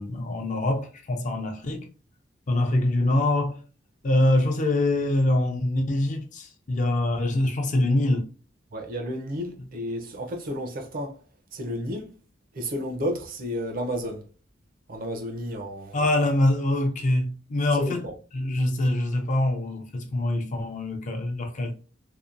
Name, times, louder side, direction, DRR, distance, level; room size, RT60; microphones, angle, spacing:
voice 1, 0.0-1.9 2.5-3.6 4.0-8.3 15.9-18.1 18.3-21.8, left 1 dB, 40° left, 0.4 m, -24 dB
voice 2, 8.7-11.2 11.5-12.1 12.5-14.2 14.9-16.0 17.8-18.1, equal, 50° right, 0.5 m, -32 dB
2.7 x 2.2 x 2.4 m
head